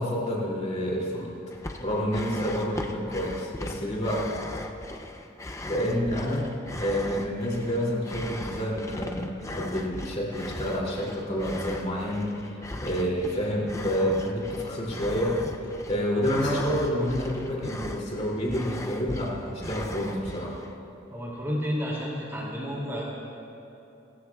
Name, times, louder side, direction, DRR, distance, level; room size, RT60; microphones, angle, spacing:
voice 1, 0.0-1.4 1.8-4.4 5.6-6.5 6.8-15.4 15.9-20.6, equal, 35° left, -3 dB, 2.8 m, -28 dB
sound 1, 1.5-20.8, left 1 dB, 15° left, 0.6 m, -39 dB
sound 2, 15.9-17.3, left 3 dB, 70° left, 3.7 m, -49 dB
voice 2, 21.1-23.0, equal, 15° right, -5 dB, 2.6 m, -31 dB
29.5 x 14.0 x 2.4 m, 2.8 s
head